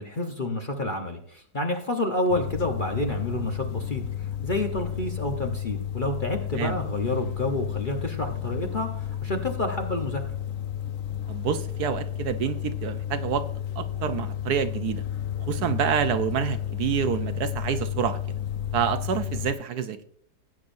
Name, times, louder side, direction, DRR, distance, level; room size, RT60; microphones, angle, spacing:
voice 1, 0.0-10.2 15.6-15.7, left 2 dB, 35° left, 3 dB, 0.9 m, -29 dB
sound 1, 2.3-19.5, left 10 dB, 70° left, 0.8 m, -32 dB
voice 2, 11.3-13.4 13.8-15.0 15.5-18.2 18.7-20.0, right 8 dB, 70° right, 10 dB, 1.2 m, -27 dB
16.5 x 8.7 x 2.6 m, 0.63 s
omnidirectional pair, 1.9 m